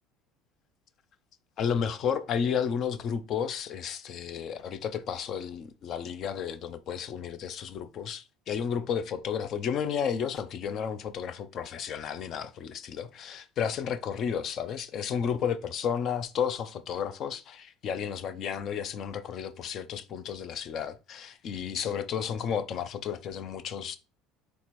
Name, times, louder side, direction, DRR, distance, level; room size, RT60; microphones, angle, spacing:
voice 1, 1.6-24.0, left 7 dB, 45° left, 0.5 m, -32 dB
4.2 x 3.4 x 3.0 m
cardioid pair, 135°, 0 cm